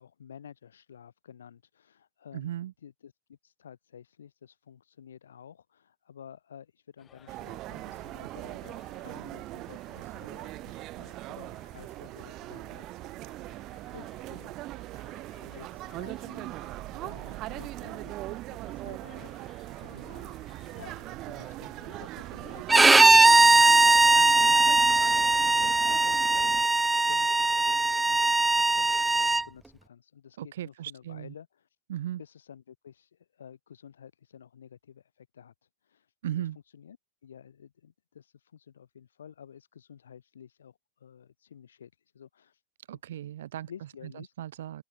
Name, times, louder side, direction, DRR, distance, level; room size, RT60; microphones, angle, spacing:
voice 1, 0.0-13.6 13.9-14.6 15.1-16.6 16.9-19.5 19.8-20.4 20.7-26.7 27.1-31.8 32.2-37.0 37.2-43.0 43.7-44.3, left 8 dB, 65° left, 2.6 m, -52 dB
voice 2, 2.3-2.7 30.4-31.3 31.9-32.2 36.2-36.6 42.9-43.7 44.4-44.8, right 12 dB, 60° right, 1.6 m, -36 dB
sound 1, 7.0-24.2, left 9 dB, 25° left, 6.6 m, -59 dB
sound 2, 7.3-26.6, right 18 dB, 35° right, 0.8 m, -40 dB
Bowed string instrument, 22.7-29.4, right 3 dB, 10° right, 0.3 m, -20 dB
open air
figure-of-eight pair, 90°, 0 cm